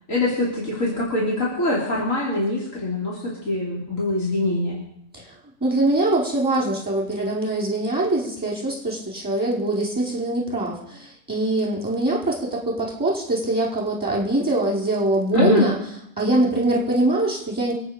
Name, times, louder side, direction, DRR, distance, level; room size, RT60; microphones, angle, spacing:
voice 1, 0.1-3.2 3.5-4.8 15.3-15.7, left 2 dB, 90° left, -5 dB, 3.8 m, -23 dB
voice 2, 5.6-15.8 16.2-17.7, right 2 dB, 5° right, -5 dB, 4.9 m, -23 dB
25.0 x 9.3 x 5.3 m, 0.76 s
omnidirectional pair, 1.3 m